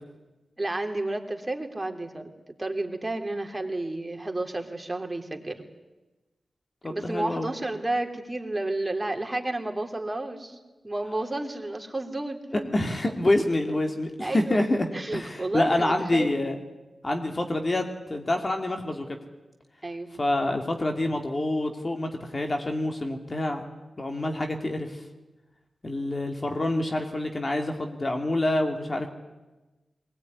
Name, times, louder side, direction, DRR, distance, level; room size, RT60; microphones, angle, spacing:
voice 1, 0.6-2.3 2.6-5.6 6.8-10.6 10.8-12.7 14.2-14.6 14.9-16.3 19.8-20.1, right 2 dB, 25° right, 4 dB, 3.3 m, -31 dB
voice 2, 6.8-7.5 12.5-16.6 17.0-17.8 18.1-19.2 20.2-23.6 24.0-25.0 25.8-29.1, left 1 dB, 40° left, 4 dB, 2.8 m, -27 dB
21.0 x 19.5 x 9.7 m, 1.1 s
cardioid pair, 40°, 0 cm